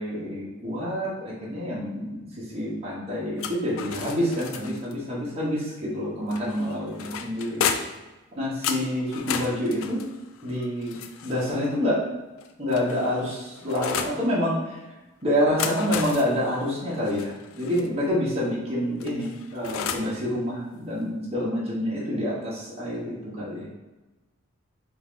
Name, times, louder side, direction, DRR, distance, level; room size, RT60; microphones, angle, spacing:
voice 1, 0.0-7.6 8.4-10.0 10.4-11.0 11.2-12.0 12.6-14.8 15.2-23.7, equal, 30° right, -7 dB, 1.0 m, -27 dB
sound 1, 3.4-5.0 6.3-8.1 8.6-11.6 12.4-14.2 15.3-17.9 19.0-20.2, left 7 dB, 75° left, 0.3 m, -33 dB
3.8 x 2.5 x 3.6 m, 1.1 s
head